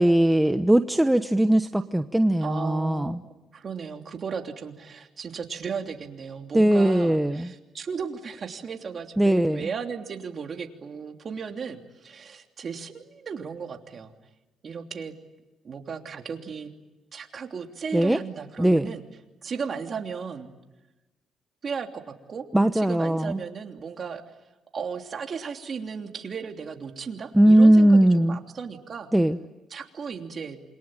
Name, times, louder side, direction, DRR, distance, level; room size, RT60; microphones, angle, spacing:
voice 1, 0.0-3.2 6.5-7.5 9.2-9.6 17.9-18.2 18.6-18.9 22.5-23.4 27.3-28.4 29.1-29.4, right 1 dB, 5° right, 9 dB, 0.9 m, -19 dB
voice 2, 2.4-14.1 14.6-15.1 15.6-16.7 17.1-19.0 19.4-20.5 21.6-22.4 22.7-24.2 24.7-29.1 29.7-30.6, right 6 dB, 45° right, 4 dB, 3.1 m, -35 dB
28.0 x 23.0 x 8.9 m, 1.1 s
cardioid pair, 90°, 0 cm